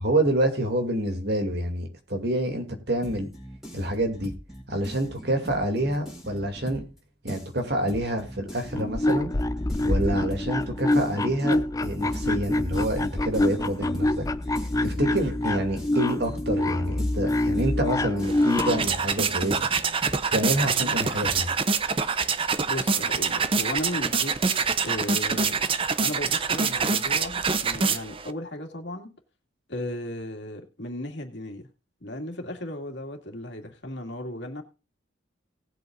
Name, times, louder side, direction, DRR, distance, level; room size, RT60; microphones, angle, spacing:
voice 1, 0.0-3.3 3.7-4.3 4.7-6.8 7.2-9.3 9.8-14.3 14.6-19.7 20.3-21.5, right 1 dB, 60° right, 2.5 m, -27 dB
sound 1, 3.0-7.0 7.3-21.4, equal, ahead, 4.7 m, -42 dB
sound 2, 8.6-18.9, left 1 dB, 20° left, 0.4 m, -26 dB
sound 3, 18.2-28.3, right 5 dB, 30° right, 0.6 m, -26 dB
voice 2, 22.7-25.6 26.0-29.1 29.7-31.7 32.0-34.6, left 1 dB, 65° left, 2.3 m, -35 dB
18.5 x 8.0 x 2.5 m
head